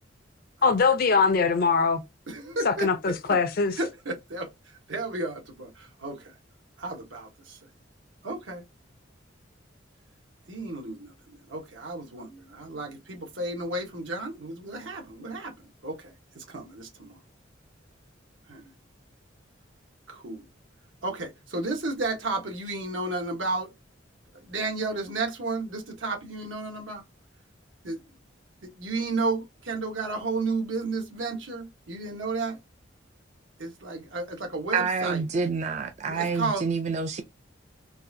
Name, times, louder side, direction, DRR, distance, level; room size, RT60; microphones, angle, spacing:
voice 1, 0.6-2.0 2.6-3.8, left 5 dB, 50° left, 0.5 m, -22 dB
voice 2, 2.3-3.4 3.8-4.5 4.9-6.3 6.8-7.6 8.2-8.6 10.5-17.2 18.5-18.7 20.1-20.5 21.0-23.7 24.4-27.0 27.8-28.0 28.6-32.6 33.6-35.2 36.1-36.6, right 3 dB, 80° right, 1.2 m, -33 dB
voice 3, 34.7-37.2, right 5 dB, 35° right, 0.4 m, -28 dB
4.0 x 2.4 x 2.7 m
head